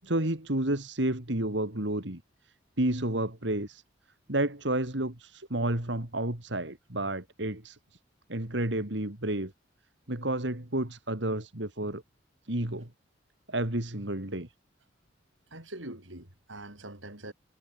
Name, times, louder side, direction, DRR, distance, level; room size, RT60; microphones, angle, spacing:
voice 1, 0.0-2.2 2.8-3.8 4.3-7.8 8.3-9.5 10.1-12.0 12.5-12.9 13.5-14.5, right 1 dB, 70° right, 3.2 m, -30 dB
voice 2, 15.5-17.3, right 1 dB, 90° right, 7.9 m, -43 dB
head